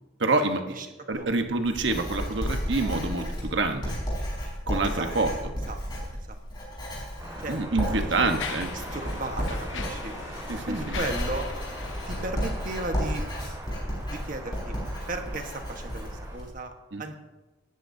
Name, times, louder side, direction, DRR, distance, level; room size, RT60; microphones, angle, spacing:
voice 1, 0.2-0.8 1.1-4.0 4.7-5.3 7.5-8.7 10.5-10.9 16.9-17.0, right 3 dB, 70° right, 6 dB, 1.2 m, -27 dB
Writing, 1.1-16.5, equal, 25° left, 5.1 m, -33 dB
Mechanisms, 6.7-6.9 7.6-13.4, left 6 dB, 75° left, 0.8 m, -41 dB
sound 1, 7.2-16.4, right 1 dB, 20° right, 5.2 m, -41 dB
voice 2, 7.9-8.4 8.7-10.2 10.7-11.5 12.1-13.3 14.1-14.8 15.1-16.7 17.0-17.1, right 2 dB, 45° right, 5 dB, 1.4 m, -35 dB
18.5 x 13.5 x 2.8 m, 1.1 s
head